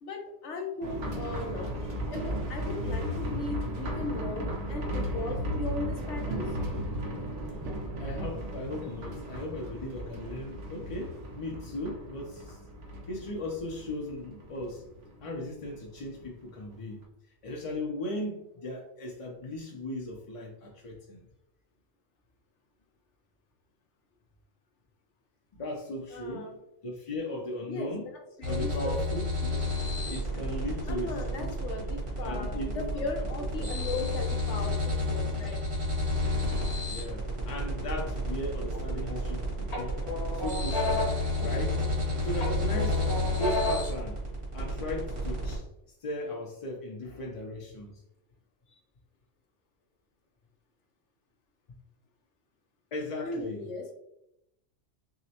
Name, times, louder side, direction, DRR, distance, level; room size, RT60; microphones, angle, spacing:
voice 1, 0.0-6.6 26.1-26.6 27.7-27.9 28.4-29.2 30.9-35.6 53.2-53.9, left 2 dB, 85° left, 2 dB, 1.1 m, -37 dB
sound 1, 0.8-16.3 16.5-16.6 17.0-17.1, equal, 85° right, 1.0 m, -35 dB
voice 2, 8.0-12.6 13.1-14.8 15.2-17.0 17.4-21.3 25.5-26.5 26.8-28.1 28.4-29.7 30.1-31.5 32.2-33.1 33.6-33.7 36.9-40.0 40.3-41.1 41.4-41.8 42.2-43.0 43.3-44.2 44.5-45.7 46.0-48.0 52.9-53.6, left 1 dB, 45° left, -1 dB, 0.5 m, -37 dB
sound 2, 28.4-45.6, left 1 dB, 65° right, 1.6 m, -31 dB
sound 3, 38.7-39.3 39.7-42.0 42.4-44.0, left 2 dB, 70° left, 1.4 m, -33 dB
6.3 x 2.1 x 2.8 m, 0.82 s
omnidirectional pair, 1.2 m